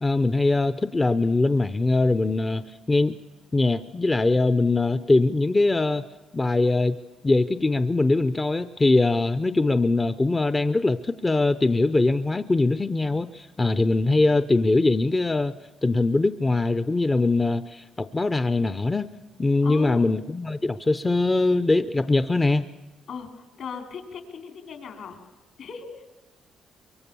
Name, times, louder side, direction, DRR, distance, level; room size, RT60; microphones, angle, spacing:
voice 1, 0.0-3.2 3.5-6.0 6.3-7.0 7.2-15.5 15.8-19.1 19.4-22.6, left 2 dB, 20° left, 12 dB, 0.7 m, -22 dB
voice 2, 19.6-20.1 23.1-25.2 25.6-26.1, left 6 dB, 65° left, 5 dB, 3.8 m, -37 dB
24.5 x 22.5 x 7.0 m, 1.2 s
cardioid pair, 90°, 0 cm